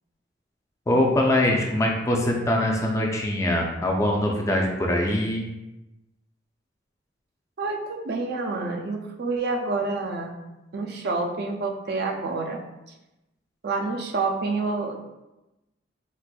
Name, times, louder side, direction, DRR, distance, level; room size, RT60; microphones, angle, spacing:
voice 1, 0.9-5.5, left 1 dB, 15° left, 0 dB, 0.3 m, -23 dB
voice 2, 7.6-10.3 10.7-12.6 13.6-15.0, right 3 dB, 55° right, 2 dB, 0.4 m, -28 dB
4.1 x 2.5 x 2.2 m, 0.97 s
head